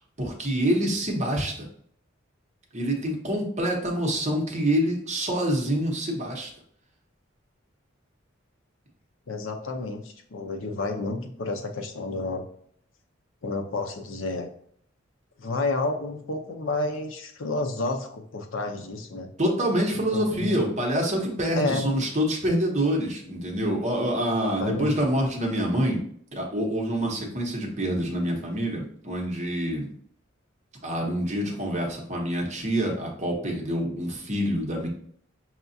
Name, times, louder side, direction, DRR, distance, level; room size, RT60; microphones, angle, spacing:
voice 1, 0.2-1.7 2.7-6.5 19.4-26.0 26.3-29.9 30.8-34.9, equal, 35° right, 0 dB, 0.9 m, -26 dB
voice 2, 9.3-12.4 13.4-14.5 15.4-19.3 20.1-20.6 21.5-21.9 24.4-24.9, left 2 dB, 70° left, 4 dB, 0.6 m, -30 dB
5.6 x 2.4 x 2.7 m, 0.62 s
head